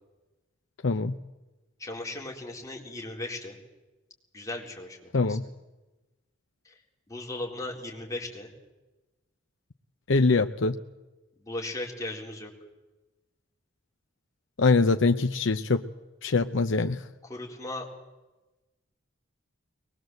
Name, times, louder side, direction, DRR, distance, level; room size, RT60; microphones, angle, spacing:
voice 1, 0.8-1.1 5.1-5.4 10.1-10.8 14.6-15.8 16.2-17.0, left 3 dB, 70° left, 7 dB, 0.7 m, -23 dB
voice 2, 1.8-3.6 4.3-5.4 6.6-6.7 7.1-8.5 11.4-12.5 17.3-17.9, left 2 dB, 15° left, -1 dB, 4.1 m, -37 dB
22.5 x 20.0 x 7.9 m, 1.1 s
head